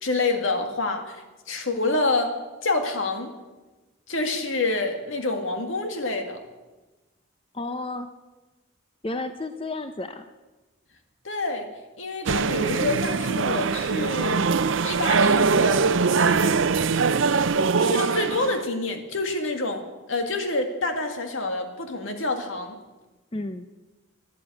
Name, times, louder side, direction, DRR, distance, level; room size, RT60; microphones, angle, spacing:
voice 1, 0.0-3.3 4.1-6.4 11.2-11.7 12.0-14.5 14.8-15.9 16.2-16.6 17.8-22.8, left 2 dB, 80° left, 5 dB, 2.0 m, -27 dB
voice 2, 7.5-8.1 9.0-10.2 23.3-23.7, left 2 dB, 25° left, 8 dB, 0.6 m, -32 dB
sound 1, 12.3-18.6, right 5 dB, 75° right, 0.6 m, -22 dB
14.5 x 10.5 x 8.5 m, 1.2 s
head